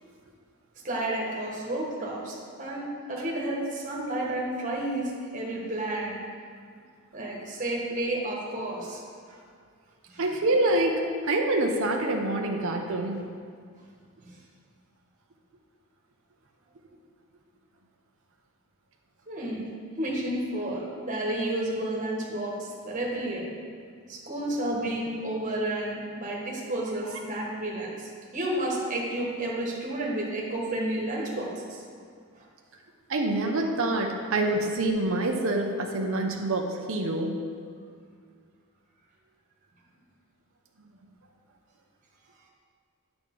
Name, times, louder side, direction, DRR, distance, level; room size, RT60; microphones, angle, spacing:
voice 1, 0.8-6.2 7.1-9.4 10.1-10.2 14.2-14.4 19.3-19.6 20.0-23.5 24.1-31.8 32.3-32.4, right 1 dB, 35° right, -3 dB, 1.4 m, -31 dB
voice 2, 10.2-13.2 27.0-27.2 33.1-37.4 40.8-40.9, right 2 dB, 65° right, 2 dB, 0.6 m, -26 dB
9.2 x 5.9 x 3.8 m, 2.1 s
head